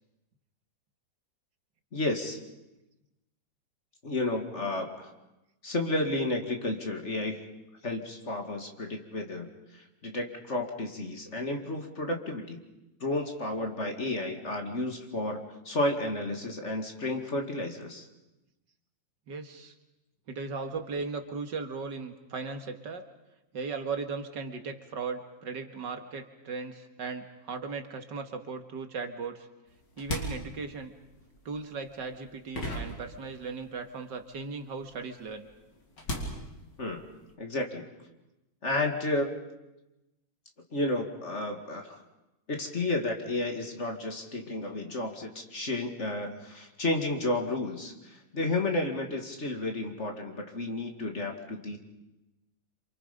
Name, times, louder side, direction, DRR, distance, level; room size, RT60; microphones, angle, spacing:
voice 1, 1.9-2.4 4.0-5.1 5.6-7.4 7.8-9.5 9.7-12.6 13.0-18.0 36.8-37.0 37.4-37.8 38.6-39.4 40.7-42.0 42.5-51.8, left 2 dB, 40° left, 3 dB, 2.4 m, -32 dB
voice 2, 19.3-19.7 20.3-23.0 23.5-29.5 30.0-30.9 31.5-35.5, right 4 dB, 70° right, 6 dB, 2.2 m, -37 dB
sound 1, 29.7-33.8 34.0-37.3, equal, 70° left, 4.0 m, -39 dB
28.5 x 27.0 x 5.3 m, 0.96 s
omnidirectional pair, 2.0 m